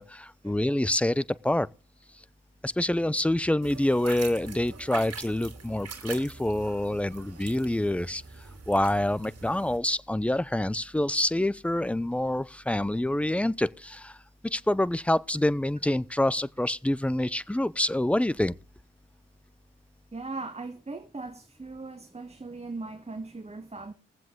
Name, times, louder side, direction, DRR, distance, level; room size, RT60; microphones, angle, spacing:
voice 1, 0.0-1.7 2.6-8.2 8.7-14.2 14.4-18.6, left 1 dB, 5° left, 0.6 m, -27 dB
sound 1, 3.6-9.8, right 5 dB, 55° right, 2.3 m, -44 dB
voice 2, 20.1-23.9, right 3 dB, 20° right, 1.3 m, -39 dB
20.5 x 7.6 x 3.7 m
hypercardioid pair, 40°, 30 cm